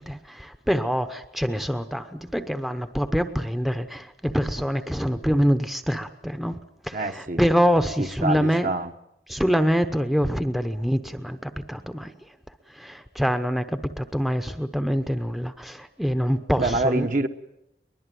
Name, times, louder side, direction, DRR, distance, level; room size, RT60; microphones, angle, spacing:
voice 1, 0.0-6.6 6.8-8.7 9.3-12.1 12.7-17.1, equal, ahead, 0.9 m, -25 dB
voice 2, 6.9-7.4 8.0-8.9 16.6-17.3, right 2 dB, 45° right, 1.3 m, -26 dB
22.5 x 21.0 x 9.2 m
head